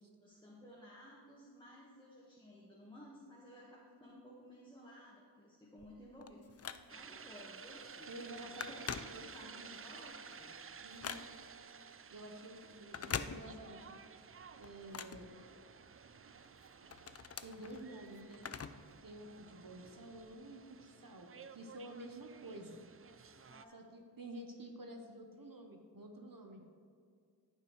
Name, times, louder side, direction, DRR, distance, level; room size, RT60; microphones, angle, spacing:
voice 1, 0.2-10.6 23.4-23.8, equal, 10° left, -5 dB, 1.4 m, -56 dB
Telephone, 5.8-7.2 7.7-7.9 8.2-9.7 10.1-11.6 12.8-13.9 14.2-16.0 16.4-19.0 19.2-19.3 20.2-20.3, left 6 dB, 35° left, 0.4 m, -45 dB
sound 1, 6.9-23.7, right 6 dB, 35° right, 0.4 m, -54 dB
voice 2, 7.8-9.9 10.8-11.3 12.1-15.4 16.8-16.9 17.4-18.5 19.0-22.8 23.7-26.6, right 1 dB, 50° right, 3 dB, 1.0 m, -51 dB
14.0 x 5.7 x 3.1 m, 2.2 s
wide cardioid pair, 45°, 44 cm